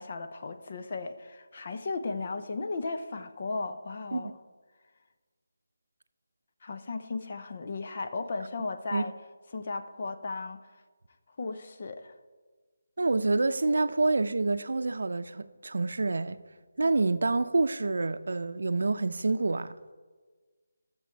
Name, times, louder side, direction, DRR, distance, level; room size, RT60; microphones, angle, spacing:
voice 1, 0.0-4.3 6.6-9.1 9.5-10.6 11.4-12.1, left 3 dB, 45° left, 0.8 m, -35 dB
voice 2, 13.0-16.4 16.8-19.7, right 3 dB, 70° right, 0.6 m, -27 dB
13.5 x 7.1 x 4.6 m
figure-of-eight pair, 165°, 0 cm